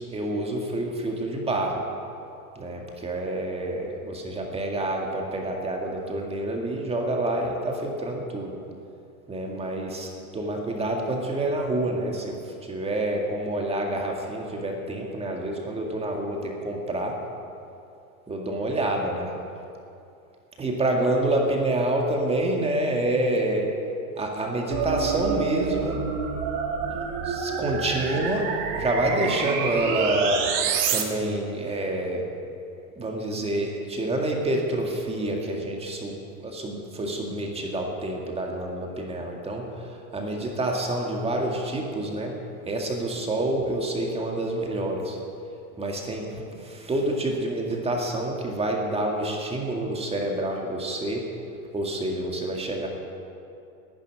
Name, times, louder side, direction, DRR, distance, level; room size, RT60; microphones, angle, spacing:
voice 1, 0.1-1.8 2.6-8.5 9.3-17.1 18.3-19.3 20.6-23.7 24.1-26.0 26.9-28.5 28.7-30.4 30.9-32.3 33.0-42.3 42.7-45.2 45.8-46.3 46.5-51.2 51.7-52.9, right 1 dB, 15° right, 0 dB, 2.0 m, -28 dB
sound 1, 24.7-31.0, right 6 dB, 45° right, 2.1 m, -28 dB
11.5 x 10.0 x 10.0 m, 2.6 s
supercardioid pair, 140°, 42 cm